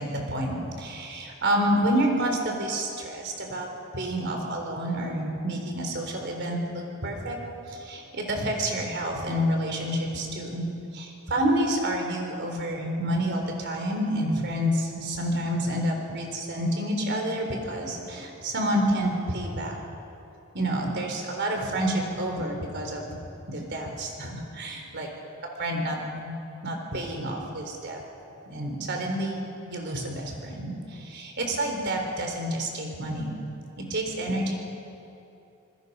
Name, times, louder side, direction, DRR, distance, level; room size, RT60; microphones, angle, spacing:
voice 1, 0.0-3.7 3.9-7.4 7.7-19.8 20.5-25.1 25.6-26.3 26.6-28.0 28.5-33.4 33.8-34.6, right 1 dB, 55° right, 2 dB, 3.9 m, -29 dB
27.5 x 20.5 x 5.5 m, 2.8 s
head